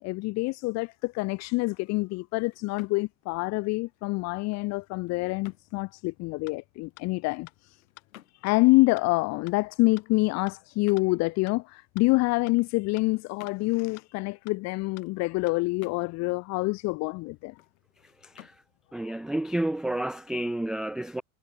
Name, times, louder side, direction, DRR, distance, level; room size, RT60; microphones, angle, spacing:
voice 1, 0.0-7.8 8.4-17.5, left 24 dB, 40° left, 0.6 m, -26 dB
sound 1, 1.5-20.3, left 13 dB, 80° left, 3.2 m, -58 dB
sound 2, 6.5-6.6 7.0-7.1 7.5-7.6 8.0-8.1 8.5-8.6 9.0-9.1 9.5-9.6 10.0-10.1 10.5-10.6 11.0-11.1 11.5-11.6 12.0-12.1 12.5-12.6 13.0-13.1 13.5-13.6 14.0-14.1 14.5-14.6 15.0-15.1 15.5-15.6, left 38 dB, 55° left, 2.4 m, -49 dB
voice 2, 18.9-21.2, right 1 dB, ahead, 0.4 m, -30 dB
hypercardioid pair, 90°, 41 cm